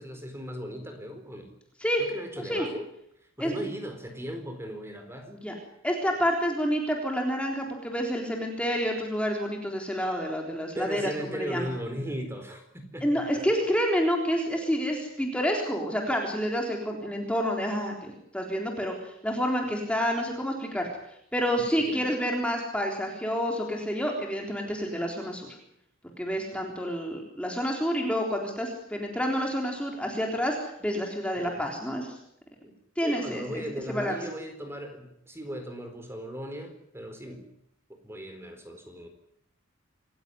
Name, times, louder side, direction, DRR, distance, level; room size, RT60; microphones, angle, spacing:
voice 1, 0.0-1.5 2.0-2.9 3.4-5.3 10.7-13.4 21.8-22.1 31.4-31.7 32.6-37.5 37.9-39.1, equal, 10° right, 6 dB, 4.4 m, -37 dB
voice 2, 5.8-11.7 13.0-18.9 19.2-20.9 21.3-25.5 26.2-32.1 33.0-34.2, equal, 5° left, 1 dB, 3.8 m, -28 dB
27.5 x 15.5 x 9.6 m, 0.76 s
head